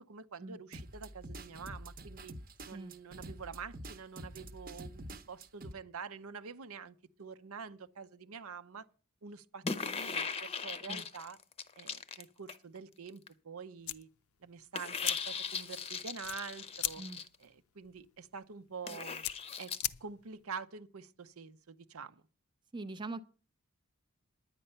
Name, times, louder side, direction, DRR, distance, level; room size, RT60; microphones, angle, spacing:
voice 1, 0.1-2.3 2.6-8.9 9.2-11.4 11.7-14.1 14.4-17.0 17.4-19.2 19.6-19.7 20.0-22.2, right 5 dB, 80° right, 0.7 m, -46 dB
sound 1, 0.7-5.7, right 1 dB, 40° right, 0.9 m, -47 dB
sound 2, 9.6-12.8 13.1-13.3 14.7-17.3 18.8-19.8, left 5 dB, 25° left, 0.7 m, -39 dB
sound 3, 13.8-20.4, left 14 dB, 80° left, 0.5 m, -42 dB
voice 2, 22.7-23.2, right 2 dB, 20° right, 0.5 m, -42 dB
10.0 x 9.8 x 5.6 m
head